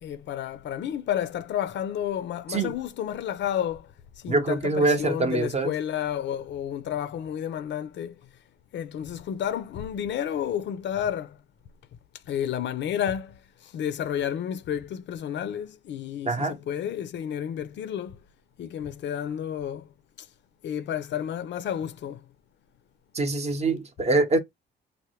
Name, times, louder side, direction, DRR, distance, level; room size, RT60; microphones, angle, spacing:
voice 1, 0.0-3.9 4.2-8.2 8.7-11.4 12.3-18.2 18.6-19.9 20.2-20.3 20.6-22.3, left 9 dB, 65° left, 0.5 m, -31 dB
voice 2, 4.3-5.7 16.2-16.6 23.1-24.4, right 3 dB, 35° right, 0.7 m, -24 dB
3.2 x 2.1 x 3.0 m
cardioid pair, 90°, 20 cm